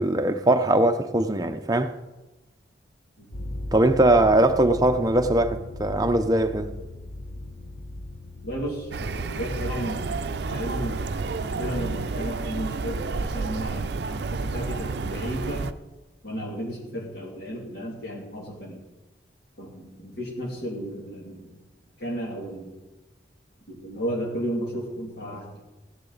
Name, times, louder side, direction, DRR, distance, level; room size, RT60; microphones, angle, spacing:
voice 1, 0.0-1.9 3.7-6.7, right 1 dB, 20° right, 0.6 m, -21 dB
sound 1, 3.3-14.1, left 1 dB, 35° left, 0.8 m, -39 dB
voice 2, 8.4-10.2 10.5-11.1 11.4-15.7 16.2-18.8 19.6-21.6 22.0-22.8 23.7-25.6, equal, 55° left, 2.7 m, -33 dB
sound 2, 8.9-15.7, right 4 dB, 65° right, 0.5 m, -30 dB
15.5 x 10.0 x 4.0 m
head